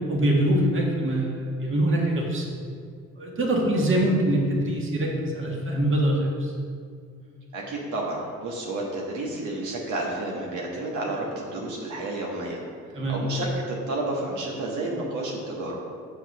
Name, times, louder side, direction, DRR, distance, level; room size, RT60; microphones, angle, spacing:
voice 1, 0.1-2.5 3.2-6.5 12.9-13.2, right 1 dB, 45° right, -1 dB, 1.8 m, -24 dB
voice 2, 7.5-12.6 13.1-15.8, right 2 dB, 75° right, -3 dB, 1.5 m, -31 dB
7.4 x 5.6 x 6.0 m, 2.2 s
cardioid pair, 90°, 30 cm